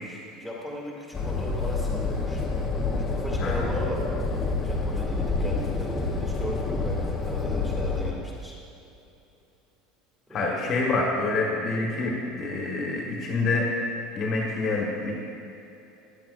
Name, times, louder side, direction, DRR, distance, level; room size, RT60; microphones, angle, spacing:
voice 1, 0.0-2.4 3.0-4.1 4.6-8.5 10.3-10.7, equal, 5° right, -5 dB, 2.0 m, -37 dB
sound 1, 1.1-8.1, left 3 dB, 15° left, 0.9 m, -28 dB
voice 2, 10.3-13.7 14.1-15.1, left 3 dB, 35° left, -2 dB, 1.4 m, -27 dB
14.5 x 10.0 x 2.5 m, 2.9 s
cardioid pair, 170°, 0 cm